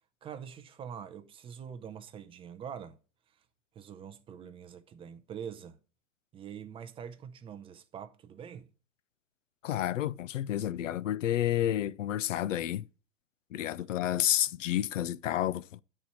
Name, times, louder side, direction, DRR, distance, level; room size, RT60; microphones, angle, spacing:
voice 1, 0.2-3.0 3.7-5.8 6.3-8.7, right 8 dB, 15° right, 0.5 m, -44 dB
voice 2, 9.6-12.9 13.5-15.8, left 12 dB, 85° left, 0.5 m, -30 dB
9.4 x 4.4 x 5.9 m
hypercardioid pair, 120°, 37 cm